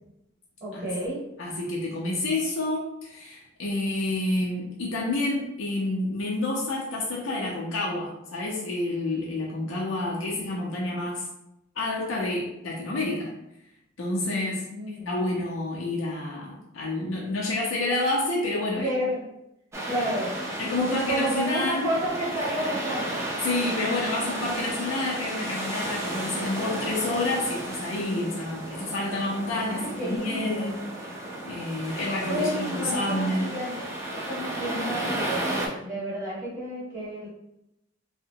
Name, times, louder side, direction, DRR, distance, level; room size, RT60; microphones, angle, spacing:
voice 1, 0.6-1.2 10.0-10.2 14.7-15.1 18.8-19.3 19.9-20.3 20.8-23.2 23.6-23.7 29.7-30.7 32.3-37.3, right 1 dB, 35° right, -8 dB, 0.8 m, -31 dB
voice 2, 1.4-11.3 11.8-13.3 14.0-14.6 15.1-18.9 20.6-21.9 23.4-30.8 31.4-33.5, left 2 dB, 80° left, -4 dB, 0.5 m, -29 dB
sound 1, 19.7-35.7, right 1 dB, 15° right, 0.3 m, -33 dB
2.8 x 2.1 x 2.7 m, 0.85 s
head